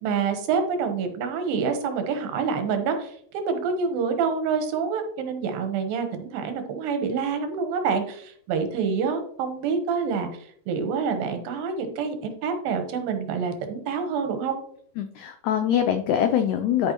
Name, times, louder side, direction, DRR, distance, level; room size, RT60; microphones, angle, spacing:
voice 1, 0.0-10.3 10.7-14.6, right 5 dB, 85° right, 6 dB, 2.9 m, -27 dB
voice 2, 15.0-16.9, left 9 dB, 85° left, 7 dB, 1.7 m, -23 dB
12.5 x 5.4 x 2.9 m, 0.64 s
omnidirectional pair, 4.0 m